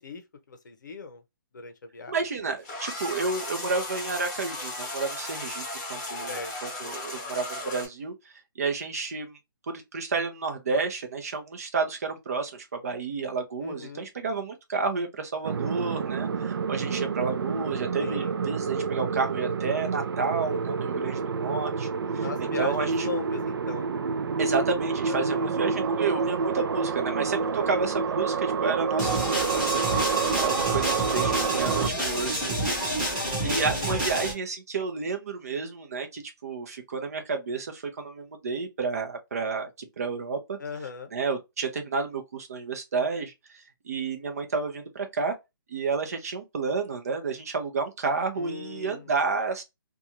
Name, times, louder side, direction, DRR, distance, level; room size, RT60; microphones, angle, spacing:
voice 1, 0.5-1.2 1.5-2.1 6.3-6.5 13.6-14.1 18.0-18.3 22.2-23.9 25.1-25.5 33.4-33.9 40.6-41.1 48.4-49.1, left 5 dB, 55° left, 0.7 m, -38 dB
voice 2, 2.1-8.1 8.6-9.4 9.7-21.9 22.1-22.3 22.6-23.1 24.4-29.4 29.7-32.4 32.7-40.6 41.1-45.3 45.7-49.6, right 4 dB, 40° right, 0.7 m, -31 dB
sound 1, 2.6-7.9, left 2 dB, 15° left, 1.0 m, -36 dB
sound 2, 15.4-31.9, right 5 dB, 90° right, 0.4 m, -28 dB
sound 3, 29.0-34.3, right 1 dB, 5° right, 0.5 m, -28 dB
2.5 x 2.3 x 2.8 m
hypercardioid pair, 175°, 12 cm